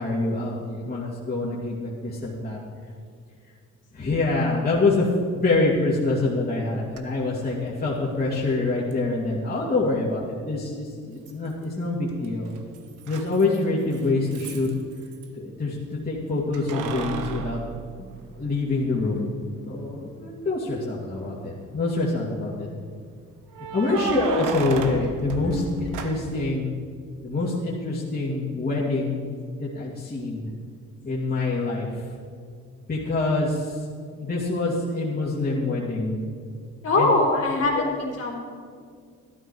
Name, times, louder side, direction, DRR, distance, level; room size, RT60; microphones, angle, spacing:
voice 1, 0.0-2.6 3.9-5.1 5.3-12.5 13.1-14.7 15.4-17.6 18.4-19.3 19.7-22.7 23.7-26.7 27.2-29.2 29.6-30.5 31.0-31.9 32.9-33.7 34.2-36.2 37.0-37.1 37.7-37.9, left 3 dB, 30° left, -6 dB, 2.5 m, -25 dB
Keys jangling, 6.9-7.0 8.9-9.0 11.3-11.8 12.1-15.3 16.5-18.7 19.1-19.2 21.0-21.6 23.5-26.5, right 6 dB, 90° right, 1.1 m, -34 dB
voice 2, 36.8-38.4, left 2 dB, 55° left, -2 dB, 3.8 m, -23 dB
13.0 x 12.0 x 4.7 m, 2.1 s
cardioid pair, 90°, 30 cm